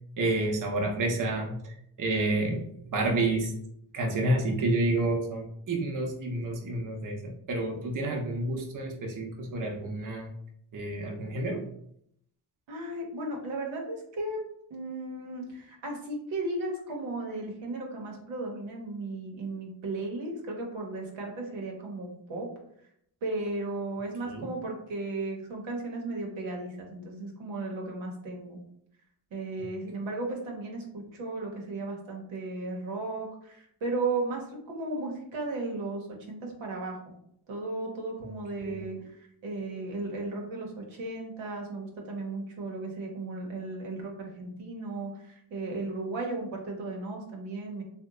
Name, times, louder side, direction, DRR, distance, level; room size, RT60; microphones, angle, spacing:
voice 1, 0.2-3.5 3.9-10.3 10.7-11.6 24.2-24.5 38.6-38.8, right 2 dB, 45° right, 1 dB, 0.8 m, -29 dB
voice 2, 12.7-14.4 14.7-22.5 23.2-28.6 29.3-37.1 37.5-47.8, right 2 dB, 85° right, 0 dB, 0.9 m, -35 dB
2.8 x 2.2 x 3.6 m, 0.70 s
cardioid pair, 60°, 45 cm